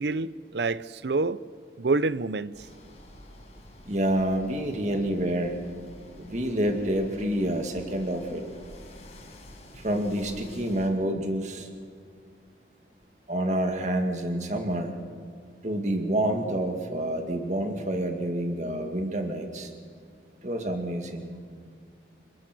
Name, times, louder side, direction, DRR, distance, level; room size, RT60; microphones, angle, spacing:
voice 1, 0.0-1.4 1.8-2.7, right 3 dB, 75° right, 0.7 m, -27 dB
sound 1, 2.5-10.9, left 1 dB, 35° left, 5.1 m, -49 dB
voice 2, 3.9-5.6 6.2-8.4 9.7-11.7 13.3-15.0 15.6-19.7 20.4-21.4, right 1 dB, 40° right, 2.3 m, -28 dB
29.0 x 20.0 x 6.2 m
head